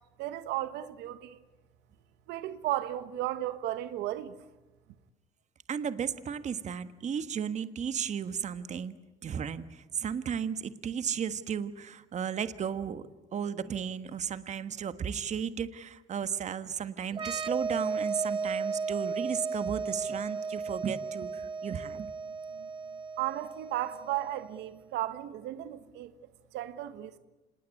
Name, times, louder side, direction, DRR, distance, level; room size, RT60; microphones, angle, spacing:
voice 1, 0.2-1.4 2.3-4.4 22.5-22.7 23.2-26.1 26.5-27.2, right 14 dB, 85° right, 1.2 m, -34 dB
voice 2, 5.7-8.9 9.2-13.0 13.3-22.1, right 7 dB, 45° right, 1.5 m, -34 dB
sound 1, 17.1-24.6, right 4 dB, 30° right, 1.2 m, -35 dB
26.5 x 20.0 x 9.6 m
cardioid pair, 110°, 17 cm